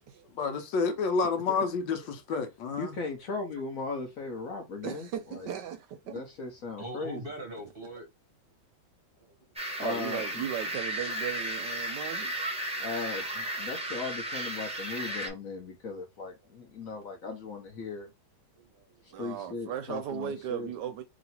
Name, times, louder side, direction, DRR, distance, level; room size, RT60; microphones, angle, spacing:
voice 1, 0.4-2.9, left 5 dB, 80° left, 1.4 m, -29 dB
voice 2, 2.8-5.5 6.1-7.2 9.8-10.4 12.8-18.1 19.2-20.7, left 4 dB, 60° left, 1.0 m, -37 dB
voice 3, 4.8-6.2 9.8-12.3 19.1-21.0, right 9 dB, 75° right, 1.1 m, -37 dB
voice 4, 6.8-8.1 9.2-9.3 18.5-19.2 19.5-19.7, right 1 dB, 40° right, 0.9 m, -43 dB
sound 1, 9.6-15.3, right 1 dB, 5° right, 0.5 m, -34 dB
3.1 x 2.9 x 4.1 m
omnidirectional pair, 2.1 m